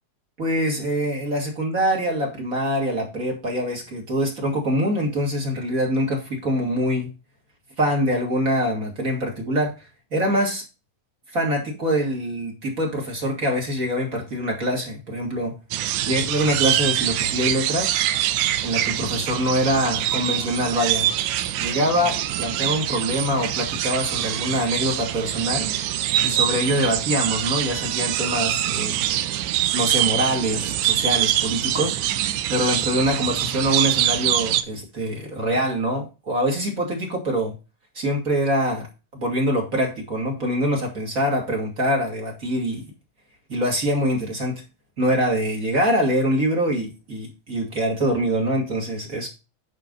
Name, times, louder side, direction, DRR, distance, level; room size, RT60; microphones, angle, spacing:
voice 1, 0.4-7.1 7.8-9.7 10.1-10.6 11.3-15.5 16.1-17.9 18.6-21.1 21.6-25.7 26.2-29.0 29.7-32.0 32.5-37.5 37.9-38.9 39.1-42.8 43.5-44.6 45.0-49.3, equal, 25° right, 0 dB, 2.7 m, -24 dB
sound 1, 15.7-34.6, right 12 dB, 80° right, 2.2 m, -24 dB
10.0 x 4.4 x 5.4 m, 0.28 s
omnidirectional pair, 3.7 m